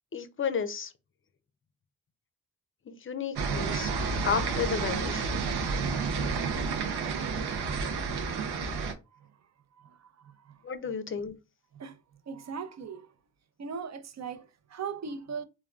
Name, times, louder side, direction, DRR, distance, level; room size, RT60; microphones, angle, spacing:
voice 1, 0.1-0.9 2.9-3.9 4.2-5.3 10.6-11.3, left 6 dB, 35° left, 0.5 m, -32 dB
sound 1, 3.4-8.9, right 5 dB, 85° right, 0.6 m, -30 dB
voice 2, 9.8-10.6 11.7-12.0 12.3-13.1 13.6-15.4, right 6 dB, 45° right, 0.5 m, -39 dB
3.4 x 2.2 x 2.3 m
cardioid pair, 70°, 38 cm